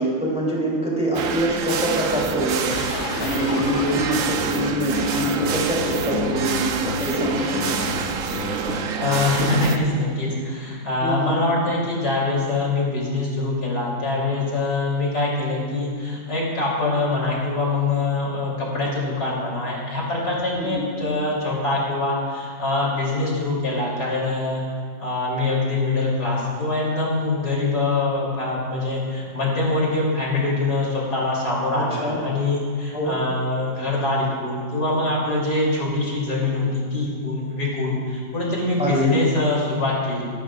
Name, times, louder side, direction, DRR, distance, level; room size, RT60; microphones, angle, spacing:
voice 1, 0.0-7.9 11.0-11.4 20.6-20.9 31.7-32.2 32.9-33.2 38.8-39.3, equal, 5° right, -5 dB, 3.2 m, -25 dB
sound 1, 1.1-9.8, right 6 dB, 60° right, 0.8 m, -27 dB
sound 2, 2.7-9.2, left 6 dB, 85° left, 1.5 m, -32 dB
voice 2, 9.0-24.6 25.0-40.3, left 2 dB, 55° left, -5 dB, 3.6 m, -24 dB
24.5 x 12.0 x 2.4 m, 2.1 s
omnidirectional pair, 2.1 m